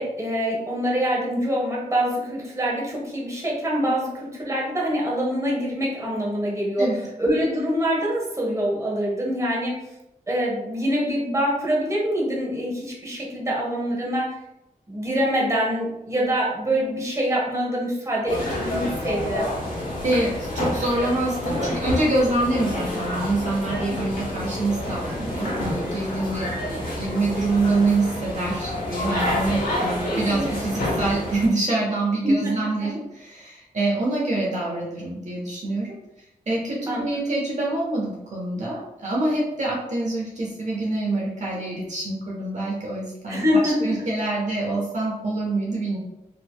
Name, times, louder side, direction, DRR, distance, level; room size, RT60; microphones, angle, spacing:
voice 1, 0.0-6.9 7.2-9.8 10.3-14.3 14.9-19.5 30.1-30.4 32.2-32.5 36.9-37.0 43.3-43.9, equal, 20° right, -4 dB, 1.2 m, -25 dB
sound 1, 18.3-31.5, left 1 dB, 90° left, 1.0 m, -28 dB
voice 2, 20.0-35.9 36.5-46.0, right 2 dB, 55° right, -4 dB, 1.0 m, -26 dB
3.8 x 3.0 x 2.2 m, 0.88 s
cardioid pair, 75°, 15 cm